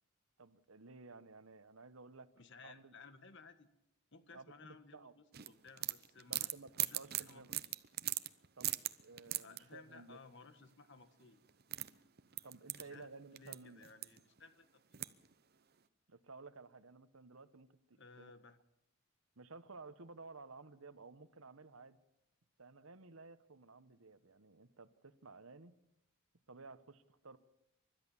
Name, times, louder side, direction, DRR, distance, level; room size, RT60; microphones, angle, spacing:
voice 1, 0.4-2.3 2.6-3.0 4.3-5.1 6.3-7.6 8.6-8.7 9.0-10.2 12.4-13.8 16.1-18.3 19.4-22.0 22.6-25.7 26.5-27.4, right 3 dB, 75° right, 13 dB, 1.2 m, -55 dB
voice 2, 2.4-3.7 4.1-6.5 6.8-7.4 9.4-11.4 12.7-14.8 17.9-18.6, left 4 dB, 55° left, 11 dB, 1.6 m, -58 dB
sound 1, 5.3-9.6 11.2-11.3 11.5-13.6 13.8-14.4 14.9-15.3, right 15 dB, 45° right, 0.8 m, -39 dB
29.5 x 13.0 x 7.2 m, 0.84 s
head